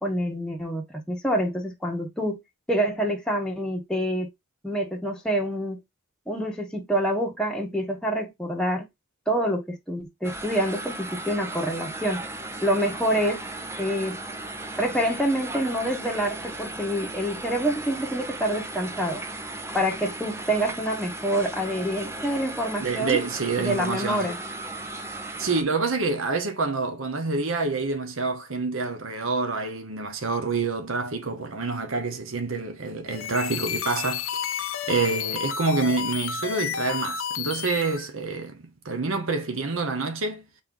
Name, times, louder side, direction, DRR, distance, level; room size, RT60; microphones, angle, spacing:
voice 1, 0.0-2.4 2.7-4.3 4.6-5.8 6.3-8.8 9.3-12.2 12.6-13.4 13.8-14.2 14.8-19.2 19.7-23.2 23.6-24.4, equal, 5° left, 1.3 m, -27 dB
sound 1, 10.2-25.6, right 2 dB, 10° right, 0.6 m, -36 dB
voice 2, 22.8-24.3 25.4-34.2 34.9-40.4, right 4 dB, 75° right, 1.1 m, -27 dB
sound 2, 33.1-38.1, left 8 dB, 75° left, 0.7 m, -31 dB
4.1 x 3.4 x 3.8 m
head